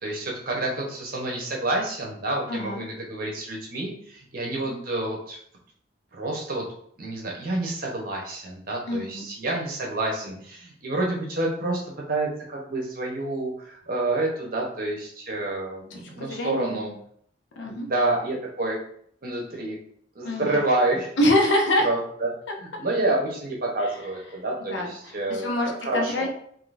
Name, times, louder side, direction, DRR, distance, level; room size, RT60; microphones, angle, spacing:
voice 1, 0.0-5.4 6.1-6.6 7.0-16.9 17.7-18.8 19.2-19.8 20.1-21.1 21.8-22.3 22.6-26.3, right 2 dB, 50° right, -1 dB, 0.9 m, -28 dB
voice 2, 2.5-2.9 4.7-4.8 8.9-9.3 15.9-17.0 17.6-17.9 20.2-20.6 21.2-21.9 24.7-26.3, left 1 dB, 75° left, 1 dB, 0.7 m, -26 dB
3.7 x 2.7 x 2.6 m, 0.63 s
head